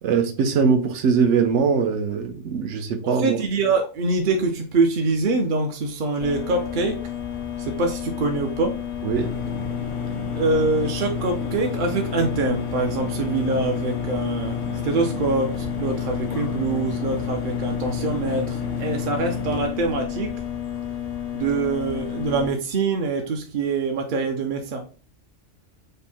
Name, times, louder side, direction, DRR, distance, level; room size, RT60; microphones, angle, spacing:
voice 1, 0.0-3.4 9.0-9.3, right 6 dB, 75° right, 1.0 m, -21 dB
voice 2, 3.0-7.0 7.6-8.8 10.3-20.4 21.3-24.8, right 3 dB, 55° right, 0.6 m, -24 dB
sound 1, 6.2-22.5, left 10 dB, 70° left, 0.3 m, -31 dB
sound 2, 9.1-19.7, left 4 dB, 85° left, 1.1 m, -32 dB
5.2 x 2.1 x 4.1 m
omnidirectional pair, 1.2 m